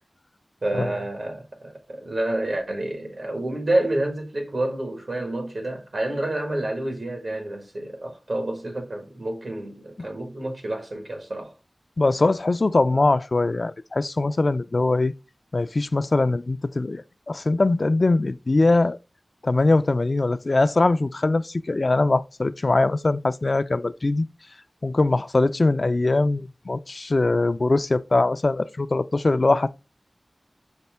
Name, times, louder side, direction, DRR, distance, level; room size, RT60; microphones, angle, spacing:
voice 1, 0.6-11.5, right 1 dB, 80° right, 1.3 m, -28 dB
voice 2, 12.0-15.1 15.5-19.0 19.4-24.3 24.8-29.7, left 2 dB, 60° left, 0.3 m, -22 dB
5.3 x 2.1 x 3.3 m
wide cardioid pair, 50°, 0 cm